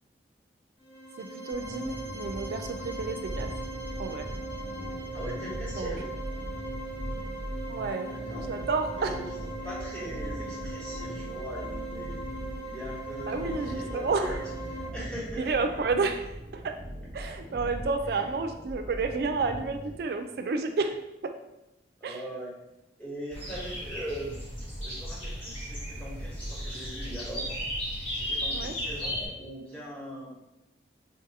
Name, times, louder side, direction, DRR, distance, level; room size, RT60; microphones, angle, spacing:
sound 1, 0.8-14.8, right 2 dB, 90° left, 1.1 m, -39 dB
voice 1, 1.2-3.5 4.0-4.3 5.7-5.9 7.7-8.2 8.5-9.1 13.3-14.3 15.4-16.8 17.1-21.0 21.2-21.4 22.0-22.2 28.5-28.7, right 4 dB, 55° right, 6 dB, 0.3 m, -30 dB
sound 2, 1.5-20.0, equal, 30° right, 0.9 m, -40 dB
voice 2, 5.1-6.1 7.7-8.5 8.9-12.2 12.6-14.4 14.7-15.5 18.1-18.3 22.0-22.5 23.0-27.6 28.1-30.3, right 1 dB, 5° left, -7 dB, 0.9 m, -40 dB
sound 3, 23.3-29.3, equal, 30° left, 1.1 m, -35 dB
3.9 x 2.5 x 2.6 m, 0.93 s
head